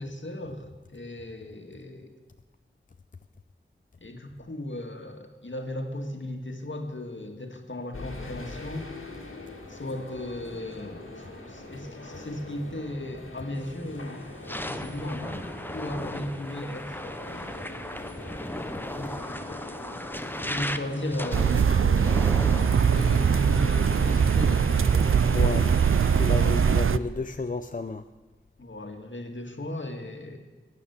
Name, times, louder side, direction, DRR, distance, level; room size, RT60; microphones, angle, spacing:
voice 1, 0.0-2.1 4.0-8.9 9.7-17.7 19.0-19.7 20.5-22.3 22.8-26.0 28.6-30.4, left 1 dB, 70° left, 4 dB, 1.7 m, -36 dB
sound 1, 7.9-25.7, left 2 dB, 85° left, 2.0 m, -42 dB
sound 2, 13.6-13.8 14.3-26.8, left 1 dB, 10° left, 0.7 m, -38 dB
sound 3, 21.3-27.0, right 7 dB, 90° right, 0.4 m, -21 dB
voice 2, 25.3-25.7 26.2-28.0, left 3 dB, 40° left, 9 dB, 0.5 m, -31 dB
15.5 x 9.4 x 7.1 m, 1.2 s
wide cardioid pair, 50°, 20 cm